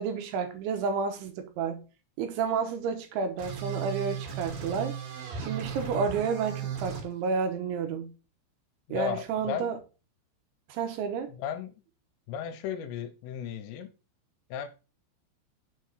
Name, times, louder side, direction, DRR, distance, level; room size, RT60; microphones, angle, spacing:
voice 1, 0.0-1.8 2.2-4.9 5.4-8.1 8.9-9.8 10.7-11.3, right 5 dB, 75° right, 3.1 m, -30 dB
sound 1, 3.4-7.0, right 8 dB, 50° right, 3.5 m, -36 dB
voice 2, 8.9-9.7 11.3-11.8 12.3-13.9 14.5-14.7, left 8 dB, 80° left, 3.3 m, -35 dB
7.3 x 4.6 x 6.4 m
omnidirectional pair, 6.0 m